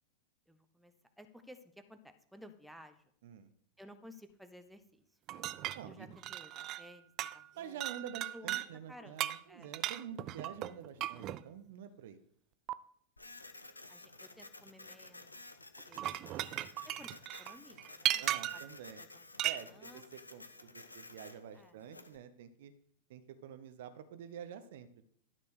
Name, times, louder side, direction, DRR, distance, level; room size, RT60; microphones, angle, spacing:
voice 1, 0.5-3.1 3.8-5.2 5.9-7.8 8.3-9.2 9.5-9.7 13.9-15.4 15.9-16.0 16.3-16.5 16.8-18.2 18.5-18.6 19.0-20.0 21.5-21.8, equal, ahead, 7 dB, 1.0 m, -56 dB
sound 1, 5.3-6.9 7.2-7.5 7.8-8.7 9.2-11.4 12.7-12.8 15.8-18.7 19.4-19.6, right 14 dB, 35° right, 0.4 m, -37 dB
voice 2, 5.7-6.1 7.5-12.2 18.2-19.0 19.4-22.7 23.1-25.0, right 8 dB, 55° right, 11 dB, 0.7 m, -48 dB
Printer, 13.2-22.2, left 2 dB, 80° left, 0.8 m, -53 dB
12.5 x 4.3 x 6.4 m, 0.64 s
figure-of-eight pair, 90°, 0 cm